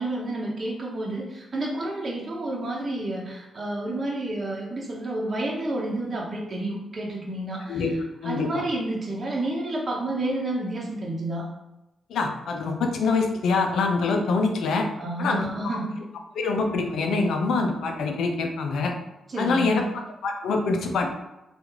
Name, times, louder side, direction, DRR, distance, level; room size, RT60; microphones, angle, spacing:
voice 1, 0.0-7.8 8.2-11.5 15.0-16.0 19.3-19.9, right 1 dB, 45° right, -3 dB, 0.8 m, -30 dB
voice 2, 8.2-8.6 12.1-14.9 15.2-15.5 16.3-18.9 19.4-19.8 20.2-21.1, left 4 dB, 75° left, 3 dB, 0.5 m, -25 dB
3.0 x 2.5 x 3.5 m, 0.93 s
supercardioid pair, 50°, 0 cm